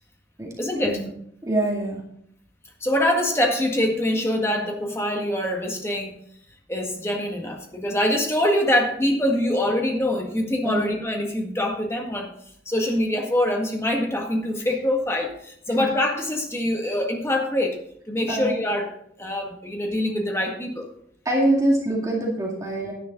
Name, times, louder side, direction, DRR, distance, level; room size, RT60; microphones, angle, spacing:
voice 1, 0.6-1.0 2.8-6.2 6.7-12.3 12.6-17.8 18.1-20.9, left 1 dB, 15° left, 1 dB, 1.7 m, -24 dB
voice 2, 1.4-2.0 10.6-10.8 15.8-15.9 18.3-18.6 21.3-22.9, right 1 dB, 20° right, -3 dB, 2.1 m, -24 dB
10.5 x 10.0 x 3.9 m, 0.67 s
head